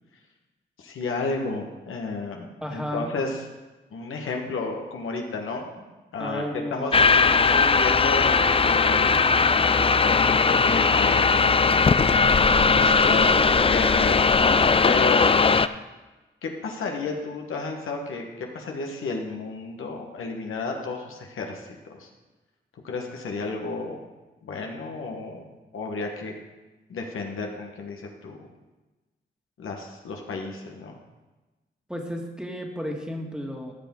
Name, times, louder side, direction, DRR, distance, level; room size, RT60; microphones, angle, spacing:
voice 1, 0.8-3.4 3.9-5.7 6.1-6.9 7.4-9.5 10.0-14.6 14.8-15.3 16.4-22.1 22.8-24.0 24.4-25.5 25.7-26.3 26.9-28.5 29.6-31.0, left 3 dB, 85° left, 2 dB, 1.3 m, -32 dB
voice 2, 2.6-3.1 6.2-7.0 12.7-13.3 31.9-33.7, equal, 5° right, 1 dB, 1.9 m, -33 dB
sound 1, 6.9-15.7, left 4 dB, 25° left, 0.4 m, -19 dB
14.5 x 5.9 x 3.7 m, 1.1 s
cardioid pair, 50°, 21 cm